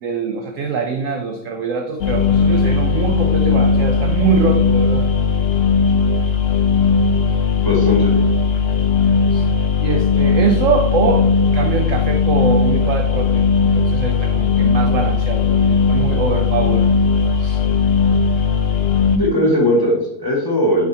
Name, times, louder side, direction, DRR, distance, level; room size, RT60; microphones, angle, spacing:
voice 1, 0.0-5.1 9.3-9.5 9.8-11.2 11.5-16.8 17.3-17.6, right 5 dB, 70° right, 4 dB, 0.7 m, -23 dB
sound 1, 2.0-19.2, left 5 dB, 85° left, 0.5 m, -17 dB
voice 2, 7.6-8.1 19.2-20.9, left 1 dB, 15° left, -3 dB, 1.2 m, -18 dB
9.4 x 4.1 x 2.8 m, 0.84 s
omnidirectional pair, 1.9 m